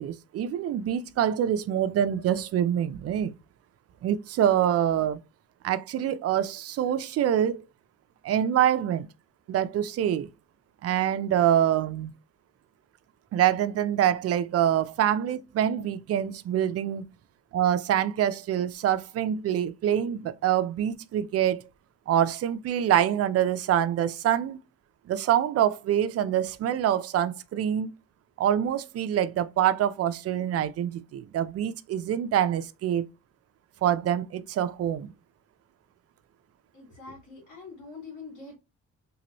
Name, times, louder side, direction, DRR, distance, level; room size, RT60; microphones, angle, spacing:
voice 1, 0.0-3.3 4.0-5.2 5.6-7.6 8.2-9.1 9.5-10.3 10.8-12.1 13.3-17.0 17.5-21.6 22.1-24.6 25.1-27.9 28.4-33.1 33.8-35.1, right 10 dB, 55° right, 0.4 m, -25 dB
voice 2, 36.7-38.6, left 4 dB, 80° left, 2.0 m, -44 dB
3.0 x 2.9 x 2.9 m
cardioid pair, 90°, 30 cm